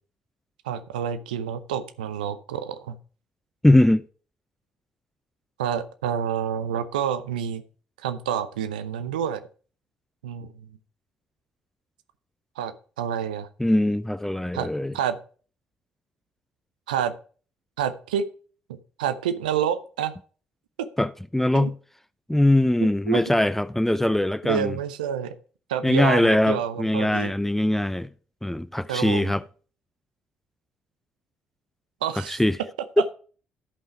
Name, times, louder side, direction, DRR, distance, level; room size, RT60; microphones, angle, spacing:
voice 1, 0.6-2.9 5.6-7.6 8.0-9.4 10.2-10.5 12.6-12.7 13.0-13.5 14.5-14.7 14.9-15.2 16.9-17.1 17.8-18.2 18.7-20.1 20.8-20.9 21.5-21.7 22.8-23.2 24.5-25.3 25.7-27.3 28.9-29.3 32.0-32.4, right 9 dB, 80° right, 0.6 m, -28 dB
voice 2, 3.6-4.0 13.6-14.9 21.0-21.8 22.3-24.8 25.8-28.1 28.4-29.4 32.3-32.6, left 1 dB, 5° left, 0.4 m, -21 dB
12.0 x 5.5 x 4.7 m
figure-of-eight pair, 45°, 4 cm